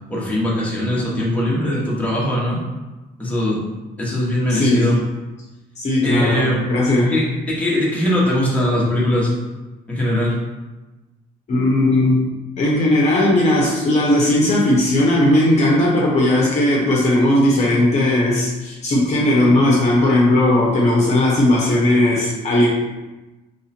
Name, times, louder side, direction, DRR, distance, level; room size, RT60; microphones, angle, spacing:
voice 1, 0.1-2.6 3.2-3.6 4.0-5.0 6.0-9.3 9.9-10.4, left 1 dB, 10° left, -6 dB, 1.2 m, -21 dB
voice 2, 4.5-4.9 5.8-7.2 11.5-12.3 12.6-22.7, left 1 dB, 40° left, -4 dB, 0.9 m, -17 dB
3.3 x 2.7 x 4.3 m, 1.1 s
cardioid pair, 110°, 17 cm